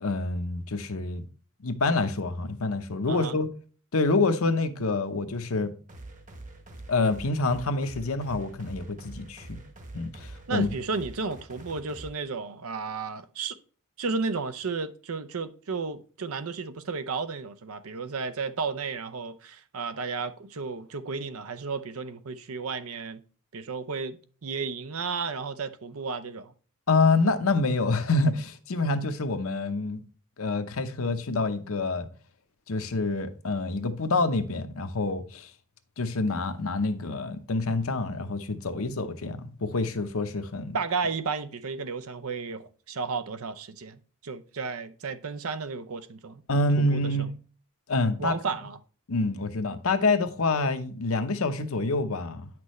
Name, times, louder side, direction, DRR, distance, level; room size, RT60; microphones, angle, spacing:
voice 1, 0.0-1.2 1.6-3.5 3.9-5.7 6.9-9.6 9.9-10.7 26.9-30.0 30.4-32.1 32.7-35.5 36.0-40.8 46.5-47.3 47.9-48.4 49.1-52.5, left 3 dB, 70° left, 0.8 m, -27 dB
sound 1, 5.9-12.1, right 2 dB, 35° right, 1.2 m, -45 dB
voice 2, 10.5-13.6 14.0-23.2 23.5-24.2 24.4-26.5 40.7-46.4 46.8-47.0 48.2-48.8, right 4 dB, 75° right, 0.7 m, -33 dB
9.0 x 6.0 x 3.1 m
head